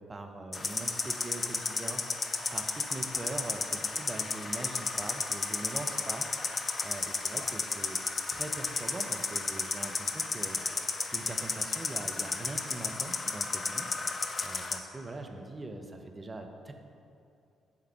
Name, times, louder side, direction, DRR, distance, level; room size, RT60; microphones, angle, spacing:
voice 1, 0.0-2.2 2.5-6.6 6.8-8.0 8.3-10.6 11.1-14.2 14.4-16.7, right 2 dB, 30° right, 4 dB, 0.6 m, -42 dB
sound 1, 0.5-14.8, left 4 dB, 40° left, 0.4 m, -33 dB
7.5 x 3.6 x 3.5 m, 2.6 s
figure-of-eight pair, 45°, 0 cm